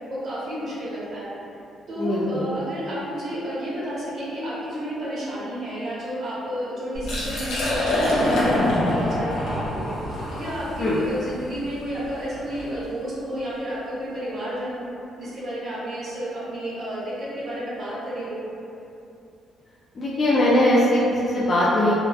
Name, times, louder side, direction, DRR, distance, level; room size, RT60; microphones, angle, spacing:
voice 1, 0.1-1.4 1.9-14.9 15.2-18.4, equal, 60° right, -9 dB, 0.8 m, -31 dB
voice 2, 2.0-2.5 10.8-11.0 20.0-22.0, left 1 dB, 45° left, -8 dB, 0.4 m, -20 dB
Liquid, 6.9-12.7, left 1 dB, 85° left, 0.7 m, -25 dB
2.8 x 2.1 x 2.3 m, 2.7 s
cardioid pair, 90°, 0 cm